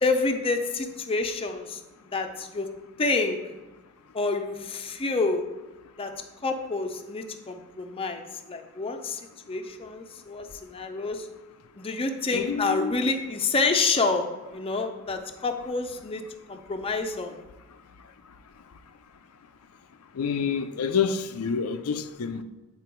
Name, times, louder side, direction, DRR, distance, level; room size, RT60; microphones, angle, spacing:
voice 1, 0.0-2.7 3.0-3.4 4.1-5.4 6.0-6.1 6.4-9.2 9.5-11.3 11.8-14.3 14.5-16.2 16.5-17.3, left 3 dB, 25° left, 0.5 m, -28 dB
voice 2, 12.3-12.9 20.1-22.4, left 6 dB, 85° left, 0.5 m, -28 dB
8.5 x 4.4 x 4.5 m
head